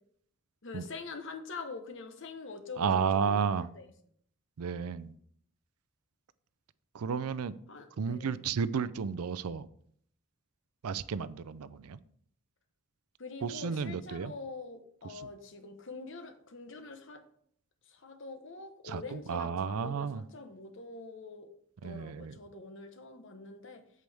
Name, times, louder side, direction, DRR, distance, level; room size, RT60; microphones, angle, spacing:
voice 1, 0.6-3.4 3.8-3.9 7.7-8.4 13.2-17.2 17.9-21.5 21.8-23.8, left 4 dB, 55° left, 7 dB, 1.0 m, -45 dB
voice 2, 2.8-3.7 4.6-5.1 6.9-7.6 8.0-9.7 10.8-12.0 13.4-14.3 15.0-15.3 18.8-20.2 21.8-22.4, right 6 dB, 80° right, 16 dB, 0.4 m, -32 dB
8.3 x 7.7 x 3.4 m, 0.64 s
head